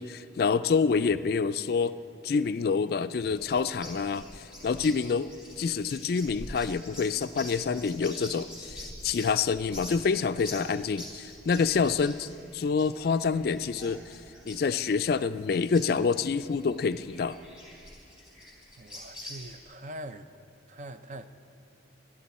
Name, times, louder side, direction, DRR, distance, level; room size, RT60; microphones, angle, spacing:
voice 1, 0.0-1.9 2.2-4.3 4.6-5.3 5.6-14.0 14.5-17.4, left 5 dB, 50° left, 12 dB, 0.3 m, -27 dB
sound 1, 3.2-19.6, left 1 dB, 5° right, 3.1 m, -46 dB
voice 2, 18.8-20.3 20.7-21.3, right 1 dB, 40° right, 9 dB, 0.5 m, -42 dB
21.5 x 11.0 x 4.2 m, 2.7 s
head